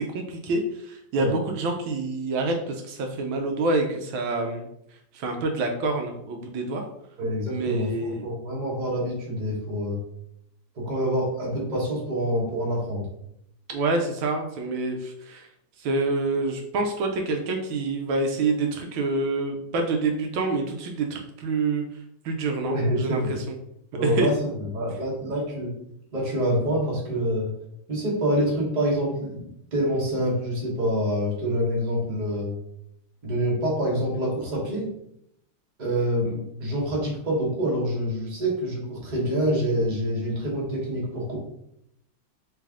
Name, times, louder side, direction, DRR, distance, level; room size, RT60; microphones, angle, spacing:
voice 1, 0.0-4.7 5.1-6.8 7.5-8.2 13.7-15.5 15.8-21.8 22.2-23.6 24.0-24.3, right 3 dB, 75° right, 3 dB, 1.3 m, -27 dB
voice 2, 7.2-10.0 10.7-13.1 22.6-23.3 23.9-25.8 26.1-27.5 27.9-32.6 33.2-34.9 35.8-41.4, equal, 30° right, -3 dB, 0.9 m, -26 dB
3.4 x 3.3 x 3.5 m, 0.76 s
omnidirectional pair, 2.3 m